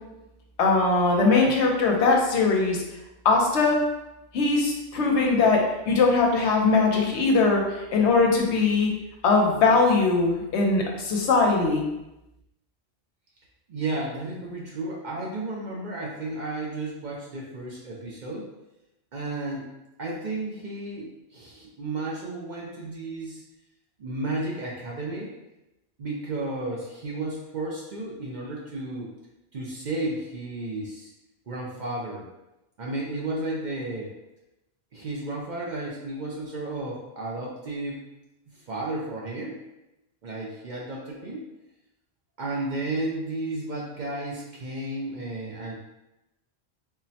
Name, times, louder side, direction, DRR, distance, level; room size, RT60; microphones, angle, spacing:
voice 1, 0.6-2.8 3.2-3.8 4.3-8.9 9.2-11.8, left 3 dB, 85° left, 0 dB, 1.0 m, -21 dB
voice 2, 13.7-18.5 19.1-19.7 20.0-23.4 24.0-25.3 26.0-29.1 29.5-31.1 31.5-32.2 32.8-34.1 34.9-38.0 38.5-39.6 40.2-41.4 42.4-45.8, right 2 dB, 55° right, -3 dB, 0.6 m, -33 dB
3.8 x 2.1 x 2.7 m, 0.95 s
omnidirectional pair, 1.1 m